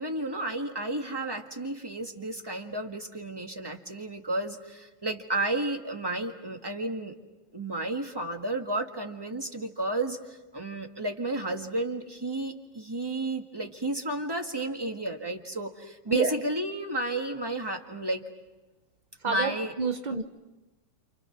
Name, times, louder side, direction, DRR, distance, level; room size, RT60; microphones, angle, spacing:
voice 1, 0.0-7.2 7.5-10.2 10.5-18.2 19.2-19.7, right 2 dB, 10° right, 4 dB, 1.6 m, -32 dB
voice 2, 19.2-20.2, right 4 dB, 75° right, 7 dB, 0.4 m, -28 dB
29.0 x 29.0 x 6.0 m, 1.1 s
omnidirectional pair, 2.4 m